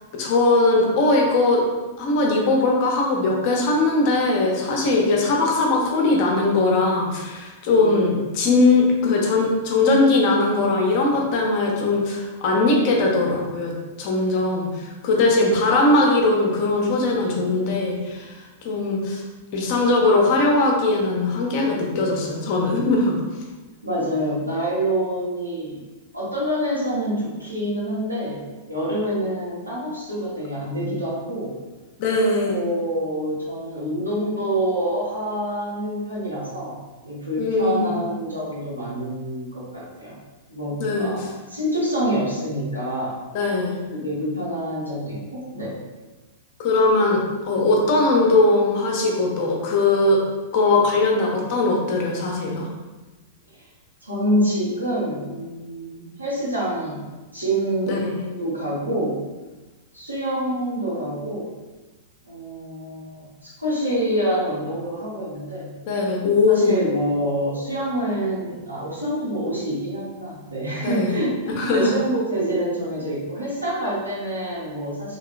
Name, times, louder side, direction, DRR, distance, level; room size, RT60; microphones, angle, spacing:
voice 1, 0.1-1.6 2.0-13.7 14.0-18.3 18.6-19.2 19.5-23.2 32.0-32.6 37.4-37.9 40.8-41.3 43.3-43.8 46.6-50.2 50.5-52.7 57.9-58.3 65.9-66.8 70.8-71.2 71.6-71.9, left 2 dB, 45° left, -1 dB, 0.6 m, -20 dB
voice 2, 7.7-8.1 23.8-25.8 26.1-28.4 28.7-31.5 32.4-36.8 37.0-40.1 40.5-43.2 43.9-45.8 54.0-57.0 57.3-58.1 58.4-59.2 59.9-61.5 62.2-63.3 63.6-65.7 66.5-75.2, right 1 dB, 85° right, -8 dB, 1.1 m, -26 dB
2.9 x 2.8 x 2.4 m, 1.2 s
figure-of-eight pair, 100°, 0 cm